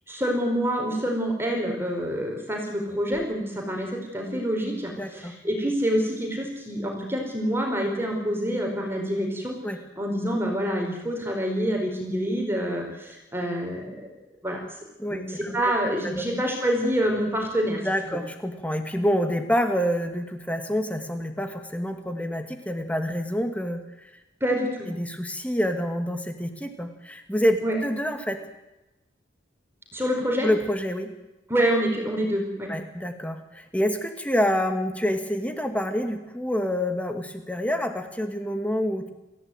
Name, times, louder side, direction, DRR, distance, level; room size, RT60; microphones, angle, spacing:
voice 1, 0.1-9.6 10.0-14.1 14.4-14.6 15.1-17.8 18.1-18.2 24.4-24.9 27.6-27.8 29.9-30.5 31.5-32.7, equal, 10° right, 1 dB, 4.6 m, -27 dB
voice 2, 5.0-5.3 9.6-9.8 15.0-15.6 16.0-16.2 17.8-24.1 24.9-28.4 30.4-31.1 32.7-39.1, equal, 5° left, 6 dB, 2.5 m, -27 dB
27.5 x 15.5 x 9.3 m, 0.99 s
head